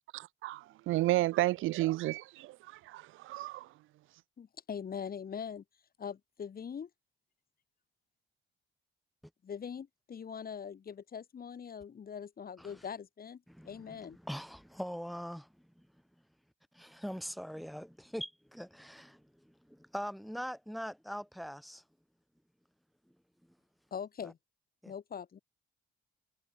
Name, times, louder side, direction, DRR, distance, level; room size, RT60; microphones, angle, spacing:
voice 1, 0.1-3.7, right 17 dB, 90° right, 1.2 m, -32 dB
voice 2, 4.4-5.6 6.0-6.9 9.4-14.2 23.9-24.4 24.9-25.4, left 7 dB, 50° left, 4.4 m, -42 dB
voice 3, 13.5-15.5 15.8-15.9 16.7-21.8 24.2-24.3 24.8-24.9, equal, ahead, 1.2 m, -42 dB
cardioid pair, 90°, 20 cm